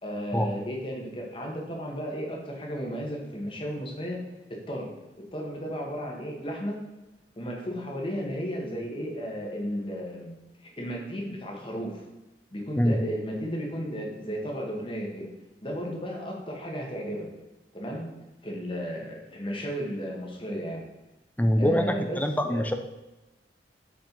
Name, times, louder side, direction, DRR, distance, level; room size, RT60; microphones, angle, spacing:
voice 1, 0.0-4.2 4.7-5.0 5.3-6.8 7.4-10.3 10.6-12.0 12.5-15.3 15.6-17.3 17.7-18.0 18.4-20.8 21.6-22.7, equal, 30° left, -1 dB, 1.7 m, -34 dB
voice 2, 21.4-22.7, equal, 10° left, 6 dB, 0.6 m, -24 dB
7.4 x 5.2 x 5.3 m, 1.0 s
head